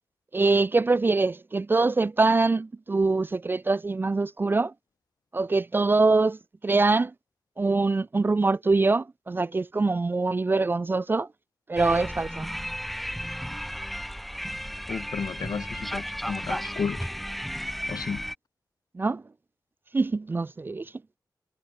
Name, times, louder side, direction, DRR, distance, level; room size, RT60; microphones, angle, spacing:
voice 1, 0.3-4.7 5.3-6.4 6.6-7.1 7.6-11.3 11.7-12.5 19.0-19.2 19.9-20.9, right 3 dB, 30° right, 0.4 m, -24 dB
sound 1, 11.8-18.4, equal, ahead, 2.5 m, -34 dB
voice 2, 14.9-17.0 17.9-18.2, left 6 dB, 60° left, 0.7 m, -32 dB
wide cardioid pair, 135°, 7 cm